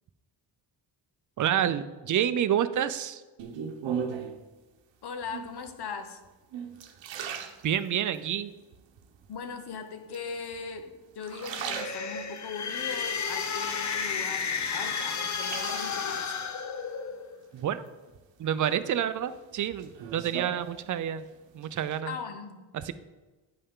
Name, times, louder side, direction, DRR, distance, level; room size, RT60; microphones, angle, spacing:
voice 1, 1.4-3.2 7.6-8.5 17.5-17.8 18.4-21.3 21.5-22.1 22.7-22.9, right 10 dB, 45° right, 13 dB, 0.4 m, -28 dB
sound 1, 3.4-4.5 5.2-5.7 6.3-8.2 8.7-9.3 10.1-10.8 11.1-12.5 13.0-14.2 14.6-16.2 17.6-18.2 18.6-21.2 21.5-22.0, right 7 dB, 80° right, 0.9 m, -39 dB
voice 2, 5.0-6.2 9.3-16.4 22.1-22.6, left 6 dB, 60° left, 7 dB, 1.0 m, -39 dB
sound 2, 11.3-17.4, left 6 dB, 40° left, 0.6 m, -32 dB
9.5 x 5.5 x 3.7 m, 1.2 s
wide cardioid pair, 130°, 44 cm